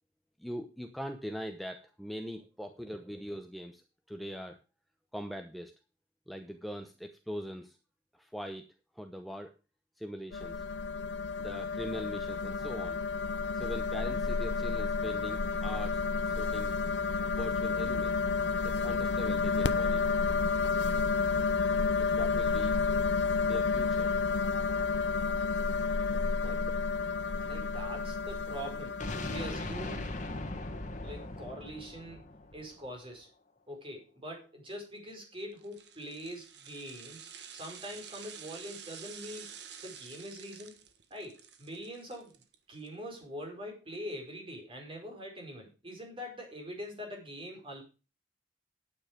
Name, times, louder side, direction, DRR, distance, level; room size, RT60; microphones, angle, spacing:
voice 1, 0.4-3.8 4.1-4.6 5.1-5.7 6.3-7.8 8.2-8.6 9.0-9.5 10.0-10.6 11.4-13.0 13.5-16.8 17.3-18.2 18.6-20.0 22.0-22.7 23.4-24.1, equal, ahead, 5 dB, 0.9 m, -42 dB
sound 1, 10.3-29.5, left 4 dB, 85° left, 0.7 m, -30 dB
voice 2, 26.3-26.7 27.4-30.1 31.0-33.3 33.7-39.5 39.8-40.8 41.1-42.3 42.7-47.8, equal, 30° right, 1 dB, 5.0 m, -43 dB
sound 2, 29.0-33.0, left 2 dB, 45° left, 2.0 m, -39 dB
sound 3, 35.6-42.9 43.2-43.3, right 8 dB, 70° right, 1.5 m, -49 dB
9.6 x 9.3 x 5.2 m, 0.32 s
head